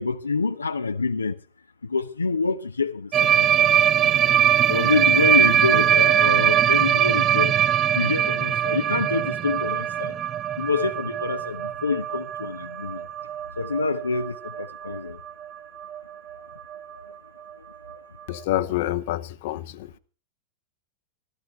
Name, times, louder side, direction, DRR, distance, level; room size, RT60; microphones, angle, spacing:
voice 1, 0.0-1.3 1.9-3.8 4.0-4.3 4.7-7.5 8.0-10.1 10.6-13.0 13.6-15.2 17.0-17.1, left 4 dB, 80° left, 0.7 m, -27 dB
sound 1, 3.1-15.0 15.3-15.5 15.8-16.0 16.3-16.4 16.7-16.8 17.9-18.0, right 10 dB, 30° right, 0.6 m, -22 dB
voice 2, 18.3-20.0, left 14 dB, 50° left, 0.9 m, -27 dB
15.5 x 13.0 x 4.4 m
figure-of-eight pair, 90°, 0 cm